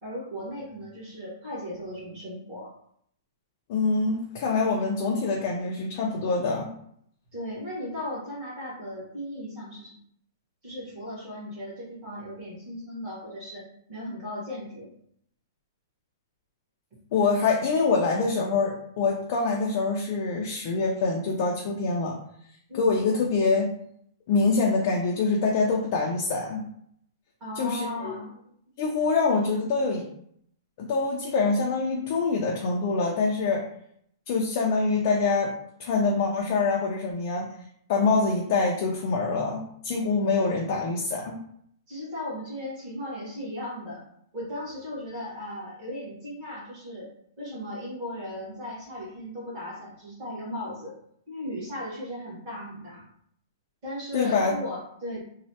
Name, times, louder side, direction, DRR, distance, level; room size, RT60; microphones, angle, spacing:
voice 1, 0.0-2.7 7.3-10.0 10.6-14.9 22.7-22.9 27.4-28.4 41.9-44.0 44.3-47.1 47.4-50.9 51.3-53.0 53.8-55.2, left 1 dB, 30° right, -7 dB, 1.3 m, -36 dB
voice 2, 3.7-6.7 17.1-22.1 22.7-23.7 24.3-26.7 27.6-28.1 28.8-30.0 30.8-33.6 34.3-35.5 35.8-37.5 37.9-41.4 54.1-54.5, left 4 dB, 30° left, -1 dB, 0.4 m, -25 dB
3.0 x 2.0 x 2.8 m, 0.69 s
hypercardioid pair, 175°, 2 cm